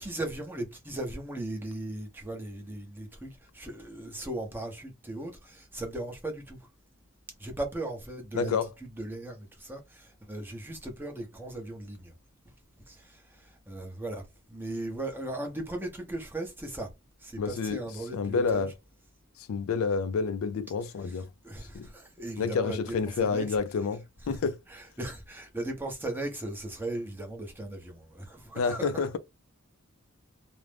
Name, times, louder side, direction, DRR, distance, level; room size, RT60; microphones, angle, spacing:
voice 1, 0.0-6.6 7.4-8.5 9.0-12.1 12.9-14.2 14.5-16.9 17.2-18.7 21.4-23.5 24.7-29.1, right 1 dB, 10° right, 0.7 m, -37 dB
voice 2, 8.3-8.7 17.4-17.9 18.1-18.7 19.4-21.3 21.7-21.9 22.4-24.6 28.5-29.2, left 5 dB, 75° left, 0.3 m, -29 dB
2.5 x 2.0 x 3.2 m
head